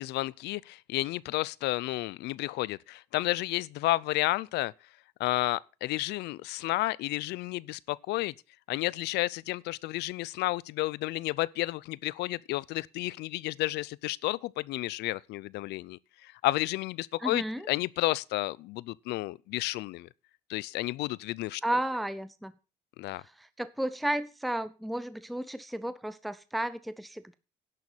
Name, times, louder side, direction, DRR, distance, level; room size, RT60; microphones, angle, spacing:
voice 1, 0.0-4.7 5.2-8.3 8.7-20.1 20.5-21.6 23.0-23.2, left 18 dB, 80° left, 0.5 m, -31 dB
voice 2, 17.2-17.7 21.6-22.5 23.2-27.3, right 1 dB, ahead, 0.6 m, -33 dB
11.0 x 6.5 x 7.1 m
cardioid pair, 110°, 17 cm